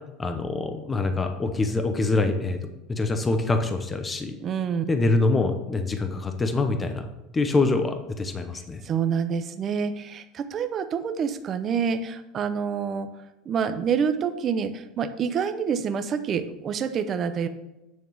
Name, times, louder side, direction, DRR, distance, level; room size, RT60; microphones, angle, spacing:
voice 1, 0.2-4.3 4.9-7.1 7.3-8.8, left 3 dB, 15° left, 6 dB, 0.8 m, -25 dB
voice 2, 4.4-4.8 8.8-13.1 13.5-17.5, right 7 dB, 35° right, 9 dB, 0.7 m, -27 dB
9.4 x 3.6 x 6.2 m, 0.96 s
supercardioid pair, 140°, 0 cm